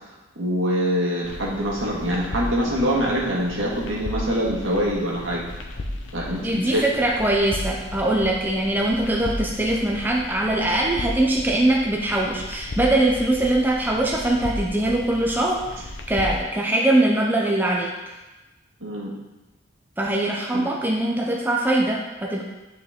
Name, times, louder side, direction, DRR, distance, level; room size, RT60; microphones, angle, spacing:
voice 1, 0.3-5.4 6.1-6.8 18.8-19.1 20.5-20.7, equal, 75° right, -4 dB, 1.8 m, -24 dB
sound 1, 1.2-16.4, left 1 dB, 60° left, 0.7 m, -35 dB
voice 2, 6.4-17.9 20.0-22.4, right 1 dB, 10° right, -2 dB, 0.5 m, -22 dB
9.0 x 4.6 x 3.6 m, 1.1 s
head